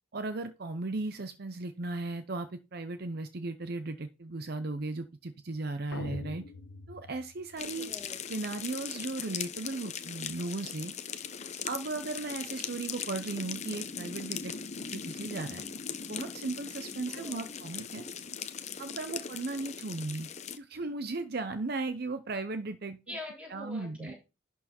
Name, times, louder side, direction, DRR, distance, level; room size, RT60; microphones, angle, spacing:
voice 1, 0.1-6.4 6.9-7.9 8.3-10.9 11.6-14.5 14.9-15.6 16.1-18.0 18.8-20.3 20.6-23.2 23.5-24.1, right 3 dB, 50° right, 10 dB, 0.6 m, -36 dB
sound 1, 5.9-8.0, left 3 dB, 75° left, 1.1 m, -43 dB
sound 2, 7.6-20.6, left 7 dB, 35° left, 0.7 m, -40 dB
voice 2, 7.8-8.4 17.1-17.5 23.1-24.1, left 1 dB, 5° right, -3 dB, 4.1 m, -44 dB
11.0 x 4.7 x 4.3 m, 0.28 s
head